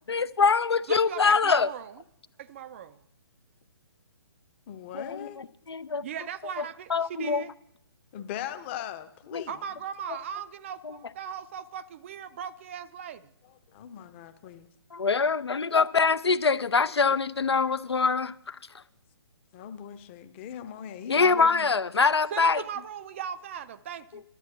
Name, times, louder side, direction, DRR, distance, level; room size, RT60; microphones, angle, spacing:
voice 1, 0.0-1.7 4.9-6.0 6.9-7.4 9.3-9.5 10.8-10.9 14.9-18.6 21.1-22.6, left 5 dB, 70° left, 0.5 m, -24 dB
voice 2, 0.9-1.9 2.4-3.0 6.0-7.5 9.5-13.3 22.3-24.2, right 8 dB, 30° right, 0.4 m, -38 dB
voice 3, 4.7-5.4 8.1-9.6 13.4-14.7 17.0-17.2 19.5-21.7, left 10 dB, 25° left, 0.8 m, -39 dB
12.0 x 8.1 x 8.1 m
figure-of-eight pair, 135°, 14 cm